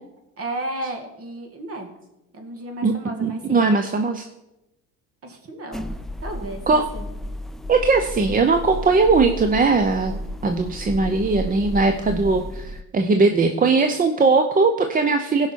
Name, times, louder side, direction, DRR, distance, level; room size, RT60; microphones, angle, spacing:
voice 1, 0.4-1.9 2.3-3.6 5.2-5.9 6.2-7.1, right 1 dB, 40° right, 4 dB, 2.2 m, -33 dB
voice 2, 2.8-4.3 6.7-6.9 7.7-15.5, right 4 dB, 25° right, 6 dB, 0.7 m, -19 dB
sound 1, 5.7-12.8, equal, ahead, 0.3 m, -33 dB
17.0 x 5.7 x 4.6 m, 0.95 s
supercardioid pair, 95°, 36 cm